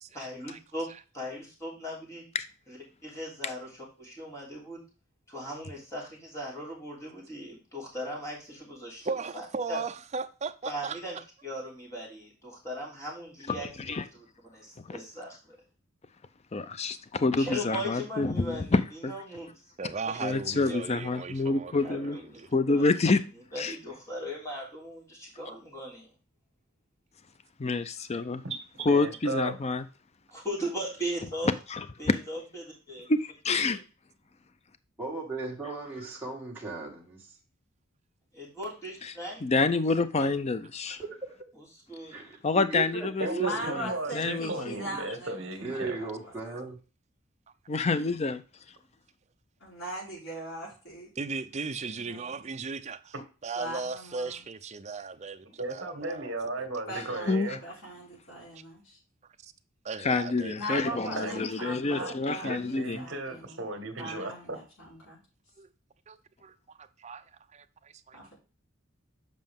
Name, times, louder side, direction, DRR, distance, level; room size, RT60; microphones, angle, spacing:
voice 1, 0.1-0.9 1.1-2.2 2.7-4.8 5.3-9.8 10.6-11.2 11.4-13.7 14.1-14.2 14.5-15.6 17.4-18.8 19.1-19.6 20.0-20.2 20.6-20.8 21.8-22.2 22.7-22.9 23.5-26.1 30.3-31.5 32.0-33.1 33.6-33.8 38.3-39.4 40.2-40.3 41.5-42.2, equal, 15° left, 3.2 m, -38 dB
voice 2, 9.0-11.0 19.8-22.5 40.9-41.0 51.2-53.1 53.4-56.3 59.4-59.5 59.8-61.4 65.6-65.7 66.1-67.2 67.5-68.2, right 4 dB, 35° right, 0.5 m, -37 dB
voice 3, 13.5-14.0 14.9-15.0 16.5-19.1 20.2-22.2 22.5-23.2 23.6-23.7 27.6-28.4 28.9-29.9 31.7-32.1 33.1-33.8 39.0-39.1 39.4-41.0 42.4-43.8 44.1-44.8 47.7-48.4 57.3-57.6 60.0-63.0, left 3 dB, 30° left, 0.5 m, -27 dB
voice 4, 28.4-29.6 43.2-46.0 55.6-57.6 61.1-62.1 62.4-64.6, right 2 dB, 60° right, 1.7 m, -36 dB
voice 5, 35.0-37.2 41.0-41.4 42.1-43.6 45.6-46.8, right 3 dB, 10° right, 2.2 m, -36 dB
voice 6, 43.4-45.4 45.7-46.3 49.6-51.1 52.0-52.4 53.6-54.4 56.9-59.0 60.5-63.6 64.0-65.2 68.1-68.3, right 1 dB, 70° left, 4.6 m, -40 dB
7.6 x 5.2 x 3.6 m
head